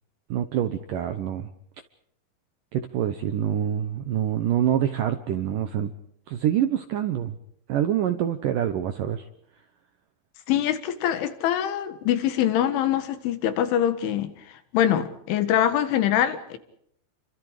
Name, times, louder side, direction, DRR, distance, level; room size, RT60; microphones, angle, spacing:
voice 1, 0.3-1.5 2.7-5.9 6.3-7.4 7.7-9.3, right 10 dB, 75° right, 2.0 m, -26 dB
voice 2, 10.5-14.3 14.7-16.6, left 10 dB, 90° left, 4.2 m, -24 dB
30.0 x 24.5 x 4.9 m
omnidirectional pair, 5.3 m